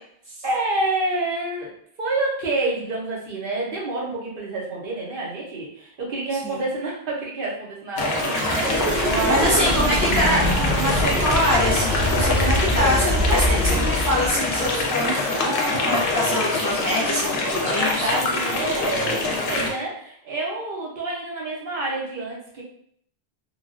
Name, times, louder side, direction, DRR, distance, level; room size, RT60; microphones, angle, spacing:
voice 1, 0.4-1.7 2.0-9.8 16.9-17.3 17.7-22.6, right 2 dB, 60° right, -3 dB, 0.9 m, -28 dB
sound 1, 8.0-19.7, left 2 dB, 60° left, 0.7 m, -24 dB
sound 2, 8.4-14.8, equal, 80° right, 1.3 m, -24 dB
voice 2, 8.9-18.1, equal, 25° left, -6 dB, 0.4 m, -25 dB
3.0 x 2.2 x 2.4 m, 0.64 s
omnidirectional pair, 1.1 m